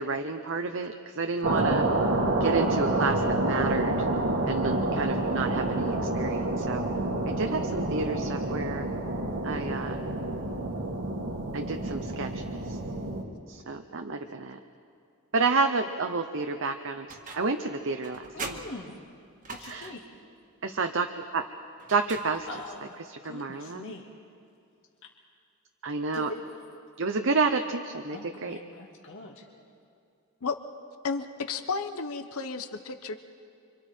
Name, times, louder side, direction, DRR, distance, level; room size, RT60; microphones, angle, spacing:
voice 1, 0.0-1.8 2.4-4.0 4.4-6.8 7.3-8.9 9.4-10.0 11.5-12.8 13.5-14.6 15.3-17.1 17.3-18.6 19.6-19.9 20.6-21.1 21.3-21.4 21.9-22.5 23.1-23.9 25.8-26.3 27.0-28.6, right 4 dB, 60° right, 5 dB, 0.9 m, -30 dB
sound 1, 1.4-13.2, right 2 dB, 80° right, 2.5 m, -28 dB
sound 2, 17.1-17.6 18.0-20.1 21.8-22.7, right 3 dB, 40° right, 1.8 m, -42 dB
voice 2, 18.3-18.9 19.5-20.0 22.5-23.0 23.2-24.0 26.1-26.4 28.1-29.4, left 2 dB, 60° left, -1 dB, 2.4 m, -42 dB
voice 3, 31.0-33.2, left 4 dB, 80° left, 9 dB, 1.1 m, -32 dB
30.0 x 25.5 x 4.5 m, 2.5 s
head